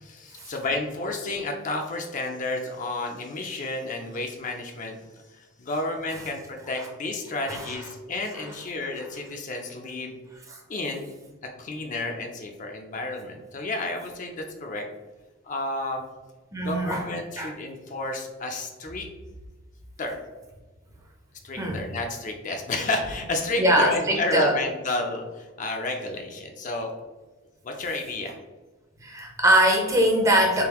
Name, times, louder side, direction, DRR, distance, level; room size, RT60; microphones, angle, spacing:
voice 1, 0.0-5.0 5.3-10.2 10.7-11.1 11.6-14.8 15.4-16.0 16.6-19.1 20.0-20.2 21.4-26.9 27.6-28.4, left 2 dB, 40° left, 3 dB, 0.5 m, -31 dB
voice 2, 7.5-7.9 8.3-8.4 10.5-10.6 16.5-17.1 17.4-17.5 21.5-21.8 23.6-24.6 29.0-30.6, right 1 dB, 15° right, 0 dB, 0.6 m, -22 dB
3.8 x 3.3 x 2.9 m, 1.2 s
head